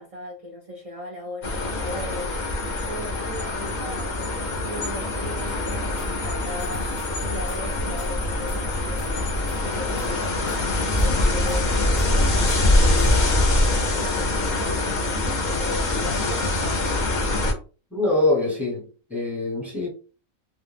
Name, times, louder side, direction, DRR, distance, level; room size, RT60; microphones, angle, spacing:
voice 1, 0.0-2.3 2.9-10.5 11.0-12.2 12.7-17.0, left 1 dB, 55° right, 0.3 m, -37 dB
sound 1, 1.4-17.5, left 2 dB, 45° left, 0.6 m, -24 dB
sound 2, 5.2-13.2, equal, 80° left, 0.4 m, -37 dB
voice 2, 17.9-19.9, left 2 dB, ahead, 0.8 m, -24 dB
2.4 x 2.2 x 3.3 m
omnidirectional pair, 1.4 m